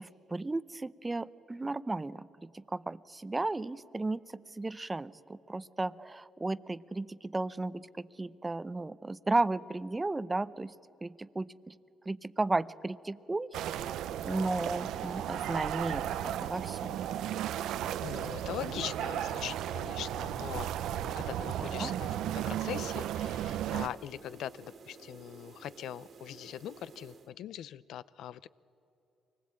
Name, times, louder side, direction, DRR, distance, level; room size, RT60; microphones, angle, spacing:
voice 1, 0.0-10.7 11.0-11.8 12.1-13.5 14.2-17.0 21.6-21.9, right 2 dB, 20° right, 17 dB, 0.6 m, -34 dB
sound 1, 13.5-23.9, right 11 dB, 85° right, 0.6 m, -35 dB
sound 2, 13.6-27.3, right 5 dB, 55° right, 1.9 m, -53 dB
voice 2, 18.0-28.5, left 11 dB, 80° left, 18 dB, 0.5 m, -41 dB
24.5 x 19.5 x 8.7 m, 2.9 s
cardioid pair, 90°, 0 cm